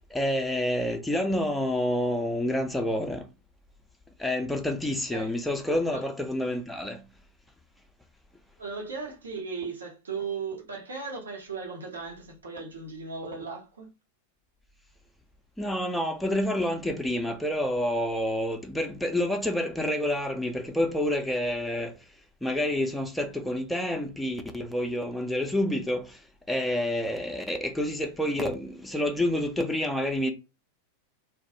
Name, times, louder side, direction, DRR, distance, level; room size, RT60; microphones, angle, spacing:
voice 1, 0.0-3.3 4.2-7.0 15.6-21.9 22.4-26.2 26.5-30.3, left 1 dB, 5° left, 0.4 m, -28 dB
voice 2, 8.6-13.9, right 4 dB, 70° right, 0.7 m, -36 dB
2.2 x 2.1 x 2.8 m
figure-of-eight pair, 90°, 0 cm